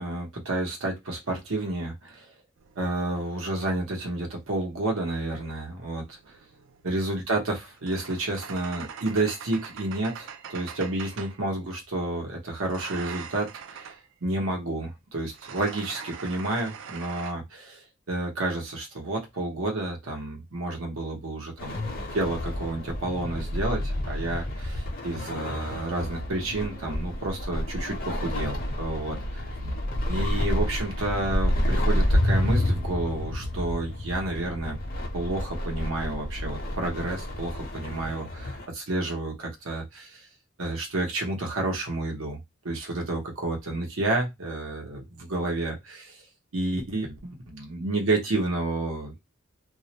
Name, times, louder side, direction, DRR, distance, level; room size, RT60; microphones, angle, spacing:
voice 1, 0.0-2.3 2.8-6.2 6.8-13.9 14.2-17.8 18.1-21.8 22.1-29.4 30.1-34.8 35.1-40.2 40.6-42.4 42.6-46.2 46.5-49.2, right 2 dB, 85° right, 1 dB, 0.9 m, -30 dB
sound 1, 2.6-4.7 5.9-11.4 12.6-14.1 15.2-17.3, right 7 dB, 65° right, 0.4 m, -43 dB
sound 2, 21.6-38.7, left 1 dB, 45° left, 0.7 m, -29 dB
2.4 x 2.0 x 2.8 m, 0.20 s
head